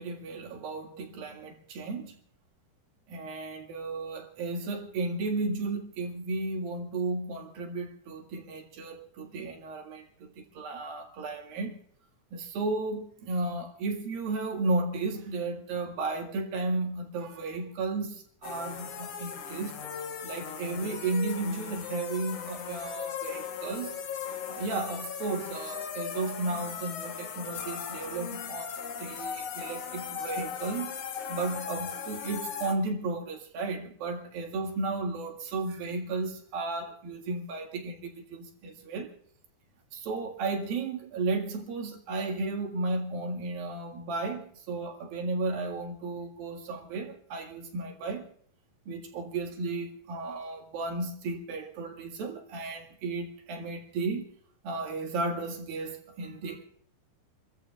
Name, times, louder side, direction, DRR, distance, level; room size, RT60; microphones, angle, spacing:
voice 1, 0.0-2.2 3.1-11.8 12.3-19.8 20.2-23.9 24.5-31.0 31.3-39.1 39.9-48.3 48.9-54.3 54.6-56.6, right 3 dB, 70° right, 3.7 m, -34 dB
sound 1, 18.4-32.7, left 7 dB, 60° left, 1.8 m, -38 dB
30.0 x 14.5 x 2.4 m
omnidirectional pair, 4.3 m